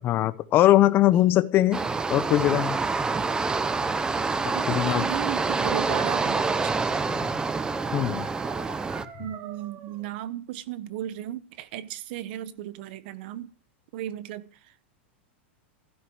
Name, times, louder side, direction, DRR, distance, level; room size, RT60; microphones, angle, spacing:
voice 1, 0.0-1.8 2.1-2.8 4.7-5.0 7.2-7.3 7.9-8.3, left 14 dB, 35° left, 0.9 m, -21 dB
sound 1, 1.7-9.0, right 4 dB, 10° right, 0.7 m, -27 dB
voice 2, 4.5-7.0 9.2-13.5 13.9-14.9, right 12 dB, 60° right, 1.0 m, -35 dB
Dog, 5.0-10.1, right 9 dB, 45° right, 1.6 m, -44 dB
15.5 x 12.5 x 4.7 m
supercardioid pair, 135°, 6 cm